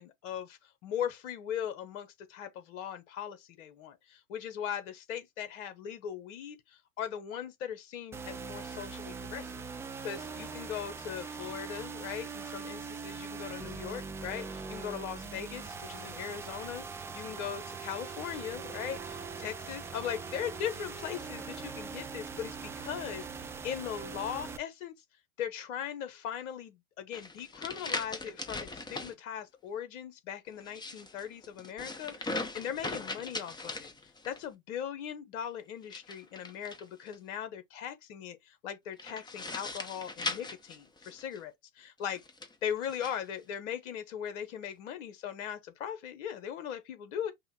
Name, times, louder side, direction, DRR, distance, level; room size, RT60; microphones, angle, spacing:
voice 1, 0.0-9.6 10.0-24.9 25.4-33.9 34.2-42.2 42.6-47.3, left 9 dB, 60° left, 1.2 m, -39 dB
sound 1, 8.1-24.6, right 5 dB, 5° right, 0.3 m, -42 dB
sound 2, 27.1-29.1 30.6-34.5 35.8-37.1 39.0-41.4 42.1-43.2, left 3 dB, 10° left, 0.9 m, -40 dB
5.5 x 2.3 x 4.1 m
hypercardioid pair, 95°, 42 cm